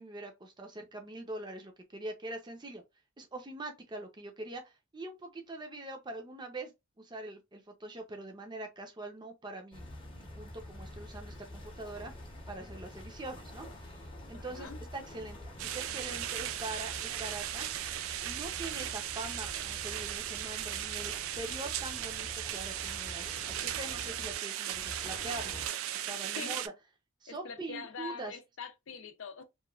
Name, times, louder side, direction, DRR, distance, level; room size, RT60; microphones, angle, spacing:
voice 1, 0.0-2.8 3.2-6.7 7.0-17.7 18.2-25.6 25.9-26.6 27.2-28.4, right 2 dB, 20° right, 0.6 m, -43 dB
sound 1, 9.7-24.3 24.7-25.7, left 1 dB, 25° left, 0.7 m, -47 dB
voice 2, 14.3-14.8 26.3-26.6 27.3-29.4, left 5 dB, 70° left, 0.5 m, -44 dB
sound 2, 15.6-26.7, right 11 dB, 80° right, 0.3 m, -37 dB
3.0 x 2.3 x 2.3 m
head